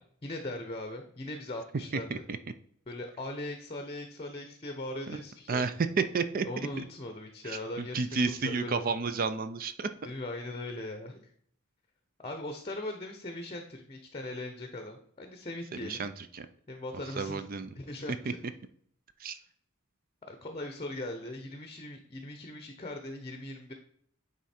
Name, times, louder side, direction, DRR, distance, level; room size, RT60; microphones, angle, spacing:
voice 1, 0.2-2.2 2.9-5.6 6.4-8.9 10.0-11.3 12.2-16.1 16.7-17.5 17.7-18.4 19.2-19.4 20.3-23.7, left 1 dB, 25° left, 6 dB, 0.7 m, -40 dB
voice 2, 5.5-6.5 6.8-6.9 7.4-9.9 15.7-16.5 17.2-17.7 19.2-19.4, right 4 dB, 40° right, 11 dB, 0.5 m, -31 dB
9.3 x 3.7 x 4.3 m, 0.64 s
head